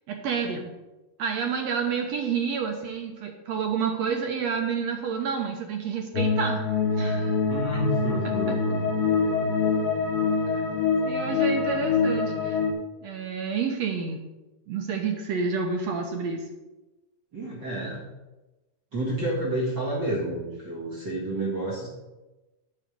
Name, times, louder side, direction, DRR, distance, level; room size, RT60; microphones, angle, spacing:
voice 1, 0.1-0.7 1.2-6.7 6.9-7.4 11.0-12.6 13.0-14.2 14.7-16.4, right 6 dB, 70° right, 3 dB, 1.7 m, -29 dB
sound 1, 6.1-12.7, left 5 dB, 55° left, 1.8 m, -25 dB
voice 2, 7.5-9.5 10.4-10.6 17.3-18.1 18.9-21.9, right 1 dB, 40° right, -5 dB, 2.0 m, -30 dB
9.7 x 7.6 x 5.2 m, 1.1 s
omnidirectional pair, 3.8 m